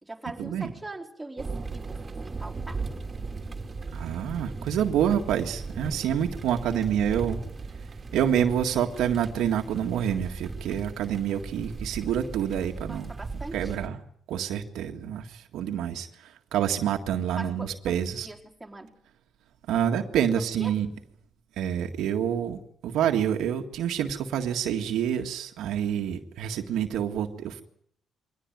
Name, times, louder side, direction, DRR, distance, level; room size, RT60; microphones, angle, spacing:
voice 1, 0.0-2.8 12.9-13.8 17.4-18.9 20.4-20.7, right 2 dB, 10° right, 0 dB, 4.2 m, -41 dB
sound 1, 1.4-13.9, right 3 dB, 30° right, 2.9 m, -37 dB
voice 2, 3.9-7.4 8.1-13.1 13.5-14.0 14.3-18.3 19.7-20.9 21.6-27.6, right 9 dB, 80° right, 5 dB, 1.8 m, -27 dB
23.0 x 18.0 x 9.5 m, 0.68 s
cardioid pair, 90°, 0 cm